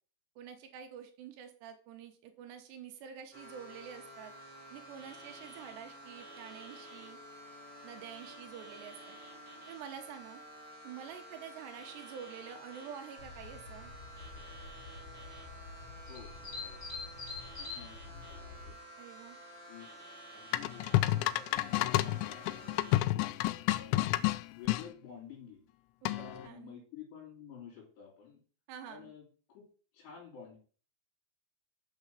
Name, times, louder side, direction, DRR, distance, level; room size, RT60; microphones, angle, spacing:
voice 1, 0.4-4.3 4.7-7.2 7.8-9.2 9.7-10.4 10.8-13.9 19.0-19.4 26.0-26.7 28.7-29.1, right 8 dB, 75° right, 6 dB, 3.2 m, -48 dB
sound 1, 3.3-23.0, right 1 dB, 20° right, 3.4 m, -51 dB
sound 2, 13.2-18.7, left 4 dB, 35° left, 4.2 m, -46 dB
voice 2, 16.0-16.9 17.6-18.7 19.6-19.9 20.3-23.3 23.7-24.1 24.5-25.6 26.1-28.4 28.9-29.6 29.9-30.6, left 7 dB, 65° left, -4 dB, 5.2 m, -51 dB
sound 3, 20.5-24.8 26.1-26.5, left 16 dB, 90° left, 3.0 m, -30 dB
7.9 x 6.2 x 7.1 m, 0.41 s
omnidirectional pair, 5.4 m